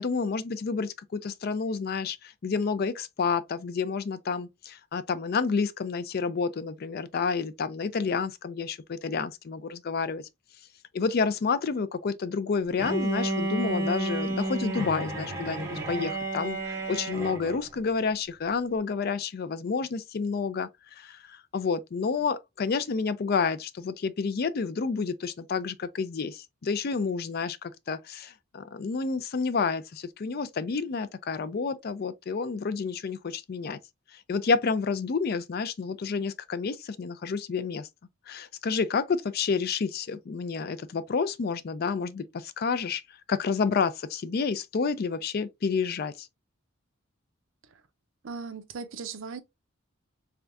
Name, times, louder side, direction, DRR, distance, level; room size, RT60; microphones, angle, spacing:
voice 1, 0.0-10.2 10.9-33.8 34.1-37.9 38.3-43.0 43.3-46.3, left 5 dB, 50° left, 0.4 m, -29 dB
Bowed string instrument, 12.8-17.7, right 1 dB, 15° right, 1.1 m, -31 dB
voice 2, 48.2-49.4, right 5 dB, 70° right, 0.6 m, -38 dB
3.6 x 3.3 x 2.5 m
head